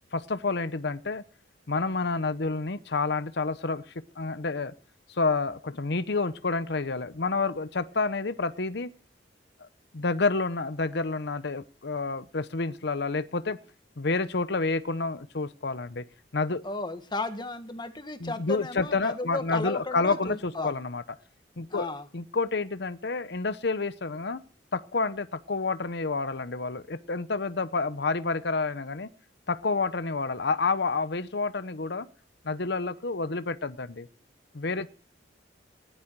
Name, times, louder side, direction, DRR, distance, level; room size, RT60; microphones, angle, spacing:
voice 1, 0.1-1.2 1.7-4.7 5.1-8.9 9.9-13.6 14.0-16.0 16.3-16.6 18.2-21.0 21.6-24.4 24.7-29.1 29.5-32.1 32.4-34.1 34.5-34.9, left 3 dB, 65° left, 13 dB, 0.9 m, -29 dB
voice 2, 16.6-20.8 21.7-22.1, left 2 dB, 25° left, 8 dB, 1.7 m, -34 dB
18.0 x 11.5 x 4.7 m, 0.38 s
head